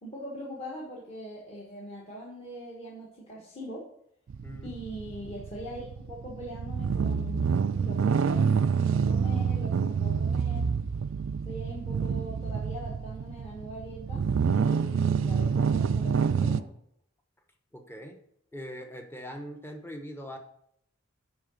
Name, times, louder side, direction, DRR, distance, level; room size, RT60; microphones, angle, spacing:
voice 1, 0.0-3.9 4.6-10.7 11.4-16.7, equal, 25° left, -5 dB, 1.5 m, -41 dB
sound 1, 4.3-16.6, right 6 dB, 60° right, 0.4 m, -27 dB
voice 2, 17.7-18.2 18.5-20.4, equal, 10° left, 4 dB, 0.9 m, -41 dB
10.5 x 3.9 x 6.4 m, 0.72 s
head